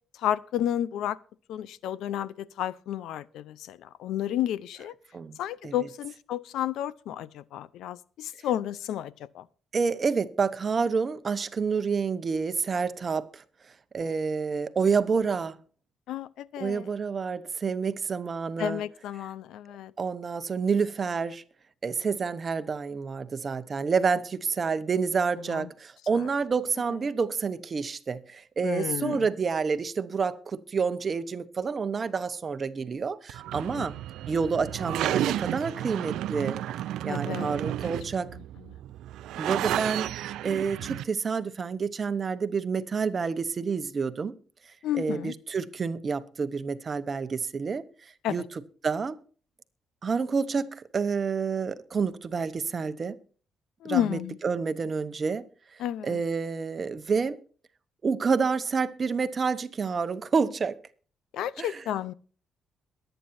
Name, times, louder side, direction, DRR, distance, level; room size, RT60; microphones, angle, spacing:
voice 1, 0.2-1.2 1.5-4.9 5.4-9.4 16.1-16.9 18.6-19.9 25.5-25.7 28.6-29.3 33.7-33.9 37.1-37.6 44.8-45.3 48.2-48.4 53.8-54.4 55.8-56.2 61.3-62.1, left 11 dB, 85° left, 0.6 m, -31 dB
voice 2, 9.7-13.4 13.9-15.6 16.6-18.8 20.0-21.4 21.8-33.9 34.3-36.6 37.0-38.3 39.4-40.1 40.4-44.3 44.9-48.4 48.8-49.2 50.0-53.1 53.8-55.4 55.7-57.4 58.0-60.8 61.6-61.8, right 5 dB, 35° right, 1.0 m, -28 dB
sound 1, 33.3-41.0, right 13 dB, 85° right, 0.5 m, -32 dB
22.0 x 9.1 x 2.7 m
cardioid pair, 115°, 0 cm